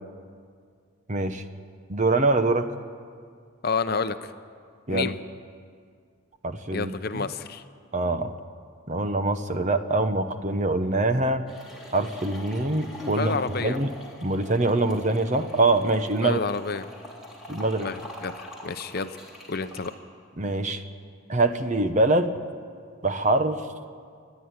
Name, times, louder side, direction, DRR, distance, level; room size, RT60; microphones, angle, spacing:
voice 1, 1.1-1.4 1.9-2.7 4.9-5.1 6.4-7.3 7.9-8.3 8.9-11.5 11.9-13.9 14.2-16.4 17.5-17.9 20.4-20.8 21.3-22.3 23.0-23.6, right 2 dB, 35° right, 9 dB, 0.9 m, -24 dB
voice 2, 3.6-4.3 4.9-5.1 6.7-7.6 13.1-13.8 16.2-16.9 17.8-19.2 19.5-19.9, left 4 dB, 45° left, 10 dB, 0.7 m, -29 dB
sound 1, 11.5-19.9, left 1 dB, ahead, 3.5 m, -43 dB
29.0 x 10.5 x 9.8 m, 2.1 s
head